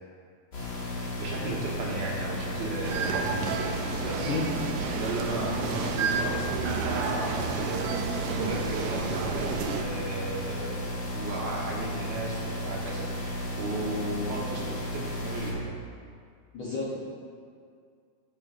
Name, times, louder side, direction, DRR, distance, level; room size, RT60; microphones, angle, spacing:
sound 1, 0.5-15.5, left 1 dB, 40° left, 2.0 m, -34 dB
voice 1, 1.2-4.4 4.9-15.7, right 2 dB, 70° right, -3 dB, 2.6 m, -35 dB
sound 2, 2.8-9.8, right 5 dB, 85° right, 1.3 m, -31 dB
voice 2, 16.5-17.0, left 3 dB, 60° left, -6 dB, 1.4 m, -32 dB
13.0 x 7.9 x 2.5 m, 2.2 s
omnidirectional pair, 3.4 m